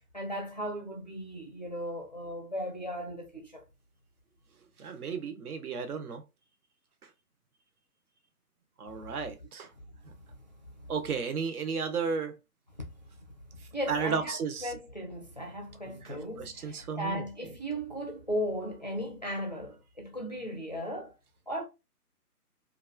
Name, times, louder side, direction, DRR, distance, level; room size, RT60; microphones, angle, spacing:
voice 1, 0.1-3.6 9.1-9.2 10.8-10.9 12.8-12.9 13.7-21.1 21.5-21.6, equal, 30° left, 0.4 m, -36 dB
voice 2, 4.8-6.2 8.8-9.7 10.9-12.3 13.9-14.7 15.9-17.2, right 5 dB, 70° right, 0.8 m, -33 dB
2.9 x 2.3 x 2.2 m
figure-of-eight pair, 145°, 47 cm